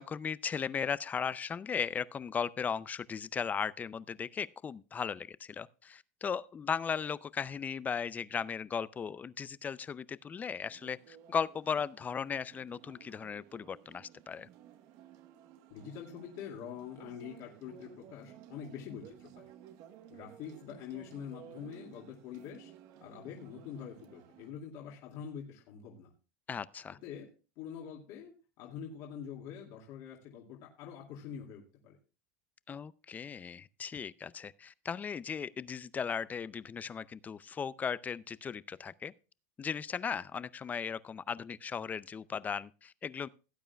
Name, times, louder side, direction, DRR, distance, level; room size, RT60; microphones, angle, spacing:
voice 1, 0.0-14.5 26.5-27.0 32.7-39.1 39.6-43.3, left 6 dB, 20° left, 0.4 m, -37 dB
sound 1, 10.7-24.5, right 10 dB, 55° right, 1.1 m, -56 dB
voice 2, 15.7-19.5 20.1-22.7 23.0-26.1 27.0-27.3 27.6-32.0, left 8 dB, 60° left, 2.3 m, -45 dB
17.5 x 9.0 x 2.3 m
supercardioid pair, 125°, 8 cm